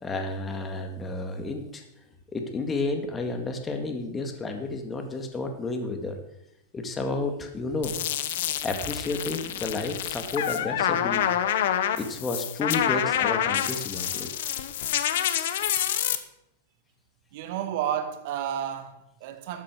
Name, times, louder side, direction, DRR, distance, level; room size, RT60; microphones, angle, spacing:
voice 1, 0.0-1.8 2.3-6.2 6.7-7.9 8.6-11.3 12.0-14.3, left 3 dB, 15° left, 1.9 m, -31 dB
sound 1, 7.8-16.2, left 10 dB, 70° left, 1.1 m, -27 dB
voice 2, 17.3-19.6, right 10 dB, 55° right, 1.8 m, -31 dB
12.5 x 8.5 x 6.4 m
supercardioid pair, 140°, 0 cm